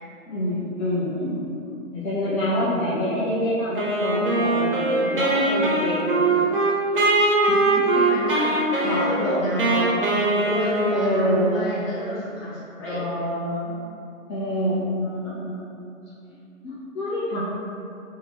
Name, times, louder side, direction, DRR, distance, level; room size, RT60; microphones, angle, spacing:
voice 1, 0.3-1.4 1.9-6.4 7.2-8.0 8.8-10.2 10.9-11.6 12.8-13.7 14.3-15.9 16.6-17.4, equal, 75° left, -10 dB, 0.9 m, -27 dB
Wind instrument woodwind instrument, 3.8-11.4, right 2 dB, 45° right, 0.5 m, -22 dB
voice 2, 8.1-13.0, equal, 45° left, -10 dB, 1.3 m, -30 dB
2.8 x 2.3 x 2.9 m, 2.6 s
hypercardioid pair, 155°, 41 cm